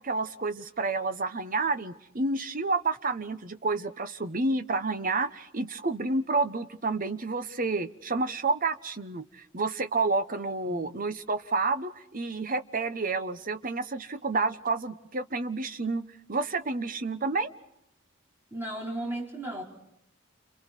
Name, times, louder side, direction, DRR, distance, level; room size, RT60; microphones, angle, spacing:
voice 1, 0.0-16.0 16.3-17.5, right 3 dB, 45° right, 10 dB, 1.1 m, -29 dB
voice 2, 18.5-19.6, right 1 dB, 10° right, -2 dB, 4.9 m, -35 dB
29.5 x 27.5 x 4.6 m, 0.84 s
head